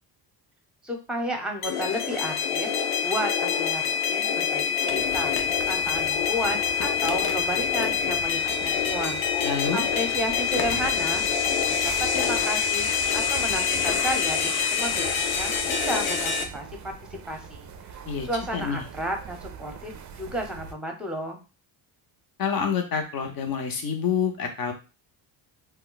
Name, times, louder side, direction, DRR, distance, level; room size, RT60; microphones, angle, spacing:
voice 1, 0.8-2.7 3.0-9.2 9.7-11.3 11.6-15.0 15.3-16.9 17.3-17.7 18.3-19.9 20.2-21.4, equal, ahead, 3 dB, 0.8 m, -32 dB
sound 1, 1.6-16.4, left 7 dB, 80° left, 0.7 m, -26 dB
sound 2, 4.8-5.5 5.8-5.9 6.8-8.0 8.4-8.5 9.5-9.6 9.8-11.2 12.1-13.2 13.9-14.2, left 5 dB, 30° left, 0.5 m, -38 dB
sound 3, 4.9-20.7, right 6 dB, 40° right, 0.4 m, -42 dB
voice 2, 9.4-9.9 18.1-18.8 22.4-24.7, left 6 dB, 45° left, 4 dB, 0.8 m, -27 dB
2.2 x 2.2 x 3.9 m, 0.32 s
cardioid pair, 85°, 49 cm